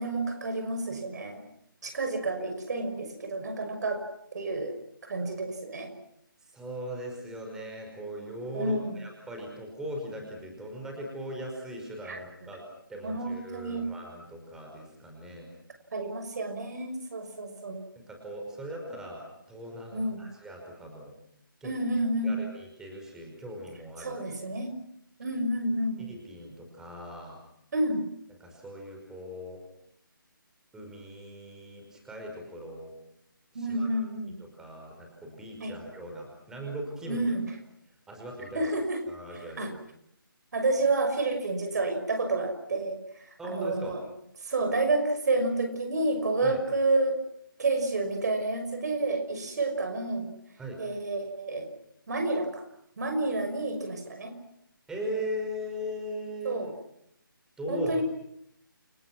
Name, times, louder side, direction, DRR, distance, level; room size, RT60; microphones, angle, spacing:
voice 1, 0.0-1.5 1.8-4.0 4.3-4.8 5.1-5.9 8.5-9.0 12.0-12.2 13.0-13.9 15.9-17.8 19.9-20.3 21.6-22.4 24.0-24.7 25.2-26.1 27.7-28.0 33.5-34.4 35.6-35.8 37.1-37.4 38.5-39.0 39.3-39.7 40.5-44.0 44.4-47.2 47.6-50.3 50.8-51.7 52.1-52.6 53.0-54.3 56.4-56.7 57.7-58.0, right 2 dB, 50° right, 7 dB, 6.0 m, -29 dB
voice 2, 6.5-12.6 12.9-15.5 18.0-21.1 21.6-21.7 22.2-24.2 26.1-27.4 28.4-29.6 30.7-32.9 33.5-33.9 34.4-37.3 38.1-38.7 39.1-39.7 43.4-44.0 46.4-46.6 50.6-50.8 54.9-56.6 57.6-58.0, equal, 5° right, 1 dB, 5.3 m, -39 dB
30.0 x 25.0 x 6.1 m, 0.75 s
figure-of-eight pair, 155°, 12 cm